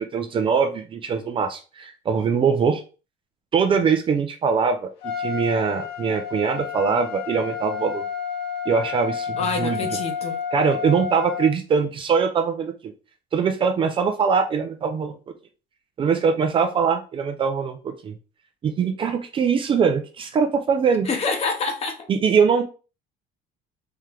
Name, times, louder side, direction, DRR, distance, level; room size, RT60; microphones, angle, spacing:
voice 1, 0.0-2.8 3.5-4.9 5.2-8.0 8.7-9.8 10.5-12.9 13.3-15.1 16.0-18.1 18.6-21.1 22.1-22.6, right 6 dB, 30° right, 6 dB, 0.4 m, -22 dB
Trumpet, 5.0-11.5, left 7 dB, 80° left, 1.5 m, -30 dB
voice 2, 9.4-10.4 21.0-22.0, left 4 dB, 35° left, 5 dB, 1.0 m, -26 dB
4.4 x 3.1 x 3.7 m, 0.33 s
cardioid pair, 165°, 18 cm